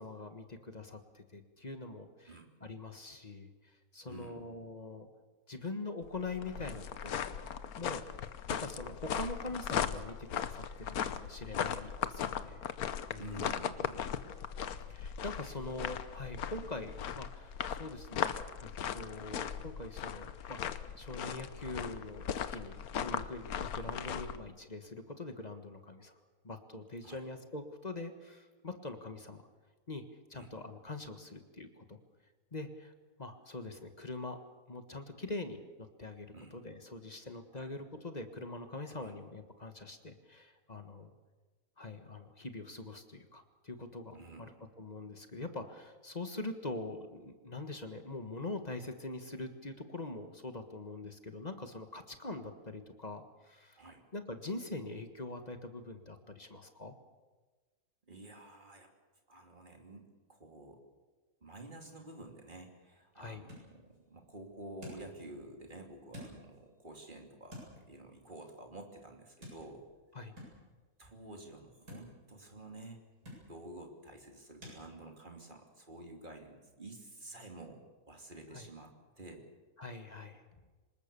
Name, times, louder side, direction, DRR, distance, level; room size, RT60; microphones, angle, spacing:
voice 1, 0.0-5.1 5.5-7.2 7.8-8.0 8.5-12.7 13.1-13.5 14.9-18.4 18.6-29.5 29.9-30.0 30.3-32.0 32.5-32.9 33.2-34.4 34.7-41.1 41.8-53.9 54.1-56.9 63.1-63.4 70.1-70.3 78.5-78.7 79.8-80.4, left 2 dB, 30° left, 7 dB, 1.5 m, -43 dB
voice 2, 4.0-4.4 13.1-14.2 15.4-15.6 16.5-16.7 23.8-23.9 27.0-27.2 30.3-30.5 36.3-36.6 37.5-37.7 39.0-39.2 44.1-44.5 53.8-54.0 58.1-58.9 59.3-60.8 61.4-69.8 71.0-73.0 73.4-77.8 78.1-79.5, right 2 dB, 30° right, 3 dB, 3.0 m, -50 dB
sound 1, 6.0-24.4, left 8 dB, 75° left, 1.4 m, -38 dB
sound 2, 62.7-74.8, left 1 dB, 90° right, 8.6 m, -56 dB
25.5 x 20.0 x 6.9 m, 1.3 s
omnidirectional pair, 1.6 m